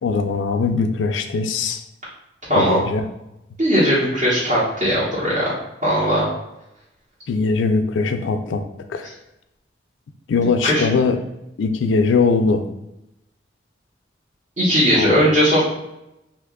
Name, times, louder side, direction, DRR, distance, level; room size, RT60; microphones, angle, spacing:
voice 1, 0.0-1.8 2.6-3.0 7.3-8.6 8.9-9.1 10.3-11.2 11.6-12.6 14.9-15.2, left 4 dB, 85° left, 7 dB, 0.4 m, -20 dB
voice 2, 2.5-2.8 3.6-5.5 5.8-6.3 10.6-10.8 14.6-15.6, equal, 40° right, -9 dB, 0.8 m, -18 dB
2.8 x 2.2 x 3.5 m, 0.90 s
head